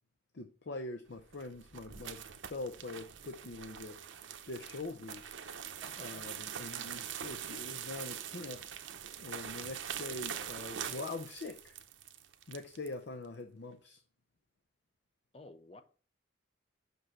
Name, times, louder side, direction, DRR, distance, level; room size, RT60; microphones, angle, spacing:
voice 1, 0.3-4.0 4.4-5.3 6.0-8.6 9.2-11.8 12.5-14.0, left 2 dB, 65° left, 0.7 m, -43 dB
sound 1, 1.2-12.9, right 9 dB, 85° right, 0.8 m, -43 dB
voice 2, 5.8-6.3 15.3-15.8, left 2 dB, 30° left, 0.7 m, -53 dB
6.1 x 5.4 x 5.6 m
head